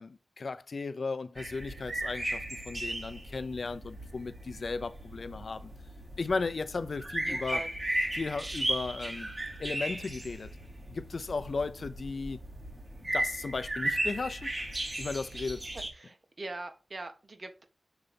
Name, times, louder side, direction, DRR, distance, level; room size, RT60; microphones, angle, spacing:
voice 1, 0.0-5.7 6.2-7.6 8.1-9.3 9.6-10.6 10.9-12.5 13.0-14.5 15.0-15.7, left 4 dB, 70° left, 0.5 m, -35 dB
sound 1, 1.4-15.9, right 1 dB, 35° right, 3.5 m, -36 dB
voice 2, 7.3-7.7 16.0-17.6, right 2 dB, 50° right, 1.4 m, -42 dB
6.8 x 4.0 x 5.2 m
wide cardioid pair, 65°, 0 cm